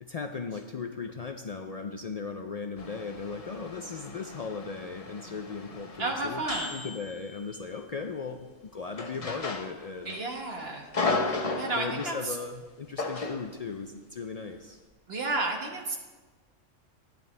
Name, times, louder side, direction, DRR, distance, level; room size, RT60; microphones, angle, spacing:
voice 1, 0.0-6.4 6.7-10.2 11.8-14.8, left 5 dB, 70° left, 5 dB, 0.3 m, -37 dB
sound 1, 2.8-7.8 8.9-10.2 10.5-12.2 13.0-13.5, left 3 dB, 35° left, 0.8 m, -35 dB
voice 2, 6.0-6.9 10.0-10.9 11.5-12.4 15.1-16.0, right 2 dB, 50° right, 1 dB, 1.5 m, -32 dB
12.0 x 10.5 x 3.3 m, 1.3 s
omnidirectional pair, 1.3 m